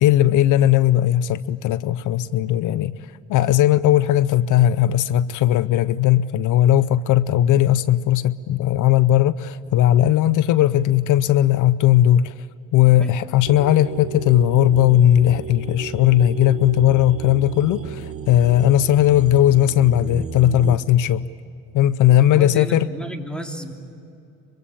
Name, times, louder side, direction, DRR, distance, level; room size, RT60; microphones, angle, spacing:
voice 1, 0.0-2.9 3.3-12.3 12.7-21.3 21.7-22.9, left 12 dB, 80° left, 17 dB, 0.7 m, -17 dB
sound 1, 13.5-20.8, right 7 dB, 50° right, 1.5 m, -33 dB
voice 2, 22.1-23.7, equal, 5° left, 3 dB, 3.0 m, -33 dB
24.5 x 24.0 x 8.6 m, 2.7 s
cardioid pair, 90°, 30 cm